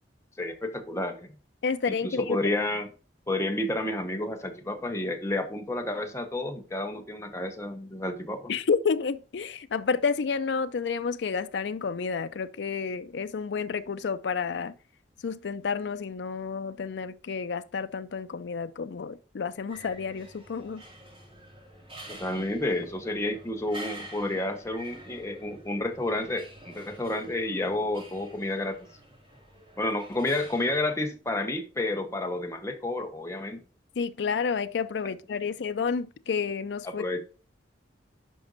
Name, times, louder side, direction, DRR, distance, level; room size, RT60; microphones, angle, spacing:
voice 1, 0.4-1.3 1.9-2.9 3.3-8.5 22.1-28.8 29.8-33.6 36.8-37.2, left 2 dB, 15° left, 1.1 m, -30 dB
voice 2, 1.6-2.4 8.5-14.7 15.2-20.8 34.0-37.0, left 5 dB, 75° left, 0.4 m, -30 dB
sound 1, 19.7-30.8, right 1 dB, 30° right, 3.7 m, -48 dB
11.0 x 5.3 x 2.6 m
head